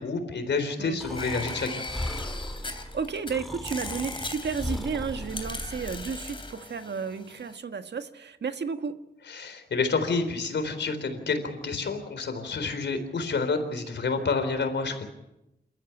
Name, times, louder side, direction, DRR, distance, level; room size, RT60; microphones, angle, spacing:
voice 1, 0.0-1.8 9.3-15.1, left 4 dB, 80° left, 8 dB, 4.0 m, -29 dB
Breathing, 1.0-6.1, left 1 dB, ahead, 2.7 m, -37 dB
sound 1, 1.2-3.3 3.7-7.6, left 3 dB, 30° left, 3.3 m, -39 dB
voice 2, 2.7-9.0, right 5 dB, 70° right, 8 dB, 1.6 m, -33 dB
28.0 x 14.0 x 9.0 m, 0.89 s
wide cardioid pair, 105°, 18 cm